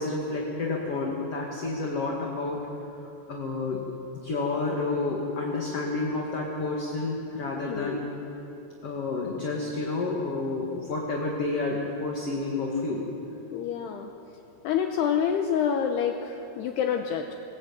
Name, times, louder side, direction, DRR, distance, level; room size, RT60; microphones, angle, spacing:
voice 1, 0.0-2.6 3.3-3.8 4.1-8.1 8.8-13.1, left 3 dB, 40° left, -2 dB, 2.4 m, -30 dB
voice 2, 7.7-8.1 13.5-14.1 14.6-17.3, left 8 dB, 75° left, 4 dB, 2.7 m, -27 dB
21.0 x 21.0 x 8.9 m, 2.9 s
omnidirectional pair, 5.4 m